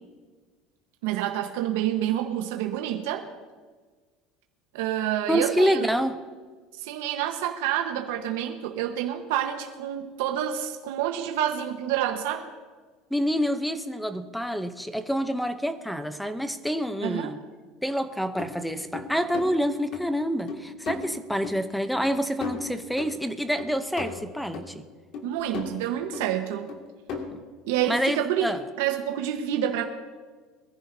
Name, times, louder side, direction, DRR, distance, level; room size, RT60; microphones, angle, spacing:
voice 1, 1.0-3.3 4.7-5.9 6.8-12.5 17.0-17.3 25.2-26.7 27.7-28.5 28.8-29.9, right 11 dB, 85° right, 3 dB, 1.2 m, -28 dB
voice 2, 5.3-6.2 13.1-17.4 17.8-24.8 27.3-27.4 27.9-28.6, equal, ahead, 10 dB, 0.7 m, -27 dB
sound 1, 18.4-18.5 18.9-19.5 19.9-20.0 20.5-21.0 21.4-21.5 22.0-22.1 22.4-23.2 23.6-24.7 25.1-25.8 26.1-26.3 26.7-27.4, left 5 dB, 50° left, 2.2 m, -35 dB
22.5 x 15.0 x 2.7 m, 1.4 s
cardioid pair, 160°, 0 cm